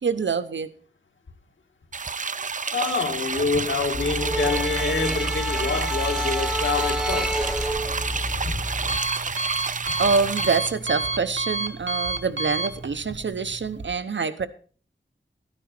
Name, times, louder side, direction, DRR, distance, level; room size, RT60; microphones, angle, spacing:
voice 1, 0.0-0.7 10.0-14.5, right 5 dB, 75° right, 0.9 m, -25 dB
sound 1, 1.9-10.7, right 5 dB, 40° right, 0.5 m, -30 dB
voice 2, 2.7-7.4 8.4-8.6 9.9-10.0, left 4 dB, 90° left, 1.8 m, -26 dB
sound 2, 3.9-9.0, equal, ahead, 1.3 m, -28 dB
Alarm, 7.5-13.9, right 3 dB, 90° right, 1.2 m, -31 dB
13.0 x 10.0 x 4.3 m
wide cardioid pair, 80°, 19 cm